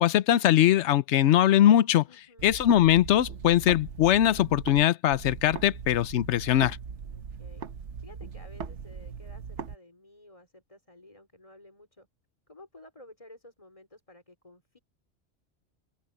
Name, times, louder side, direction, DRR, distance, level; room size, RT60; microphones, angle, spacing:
voice 1, 0.0-2.0 2.4-6.8, left 12 dB, 80° left, 0.9 m, -21 dB
voice 2, 2.1-2.6 7.0-12.1 12.5-14.8, left 1 dB, 30° left, 3.8 m, -53 dB
sound 1, 2.4-4.8 5.1-9.8, right 6 dB, 90° right, 1.3 m, -40 dB
open air
omnidirectional pair, 1.2 m